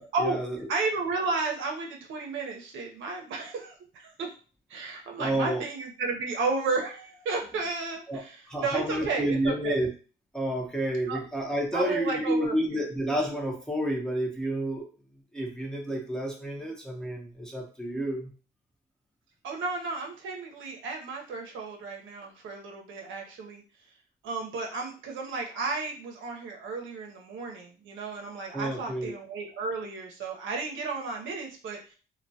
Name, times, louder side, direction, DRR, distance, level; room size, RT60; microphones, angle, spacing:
voice 1, 0.0-0.7 5.2-5.6 8.1-8.2 8.5-9.9 10.3-14.9 15.3-18.3 28.5-29.1, right 1 dB, 5° left, -1 dB, 0.6 m, -30 dB
voice 2, 0.7-4.3 4.7-9.8 11.1-11.2 11.7-12.9 19.4-23.6 24.2-32.0, right 4 dB, 75° right, 1 dB, 0.6 m, -33 dB
2.2 x 2.1 x 2.6 m, 0.37 s
cardioid pair, 90°, 20 cm